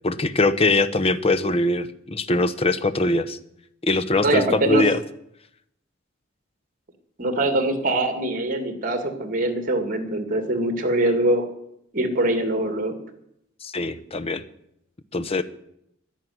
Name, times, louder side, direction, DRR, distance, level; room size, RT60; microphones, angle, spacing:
voice 1, 0.0-3.4 3.8-5.0 13.6-14.4 15.1-15.4, left 2 dB, 30° left, 11 dB, 0.9 m, -22 dB
voice 2, 4.2-4.8 7.2-11.4 11.9-13.0, right 1 dB, 45° right, 8 dB, 2.4 m, -23 dB
11.5 x 11.0 x 9.4 m, 0.76 s
head